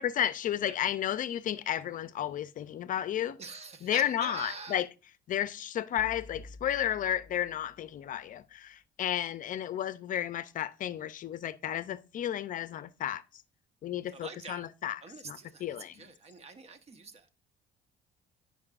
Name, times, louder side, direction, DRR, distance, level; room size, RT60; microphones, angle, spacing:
voice 1, 0.0-3.4 3.8-4.9 5.3-13.2 13.8-16.0, left 11 dB, 50° left, 0.5 m, -33 dB
voice 2, 3.4-4.8 14.1-14.7 15.0-17.3, right 4 dB, 40° right, 1.1 m, -45 dB
sound 1, 6.0-8.1, left 2 dB, 30° left, 1.3 m, -50 dB
14.5 x 5.4 x 2.5 m
cardioid pair, 110°, 17 cm